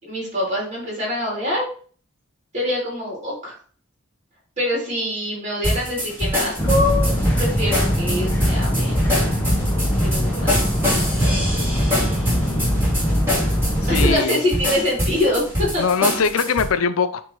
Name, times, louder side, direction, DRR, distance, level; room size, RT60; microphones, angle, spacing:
voice 1, 0.0-1.7 2.5-3.5 4.6-9.1 10.0-10.6 10.9-11.3 13.9-15.8, left 1 dB, 35° right, -4 dB, 3.2 m, -24 dB
sound 1, 5.6-16.7, equal, 10° right, 2.7 m, -24 dB
sound 2, 6.6-14.1, equal, 10° left, 0.9 m, -22 dB
voice 2, 13.7-14.4 15.8-17.2, left 5 dB, 85° left, 11 dB, 0.5 m, -21 dB
9.1 x 3.6 x 3.1 m, 0.44 s
head